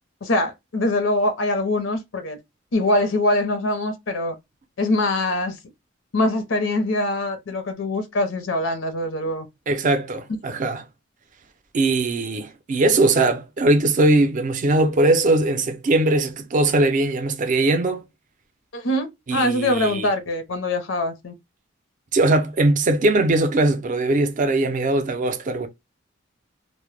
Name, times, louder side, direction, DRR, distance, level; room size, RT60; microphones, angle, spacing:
voice 1, 0.2-2.4 2.7-4.4 4.8-5.6 6.1-9.5 18.7-21.3, left 1 dB, 90° left, 0.6 m, -23 dB
voice 2, 9.7-10.8 11.7-18.0 19.3-20.1 22.1-25.7, right 2 dB, 40° right, 0.4 m, -20 dB
2.0 x 2.0 x 3.1 m
head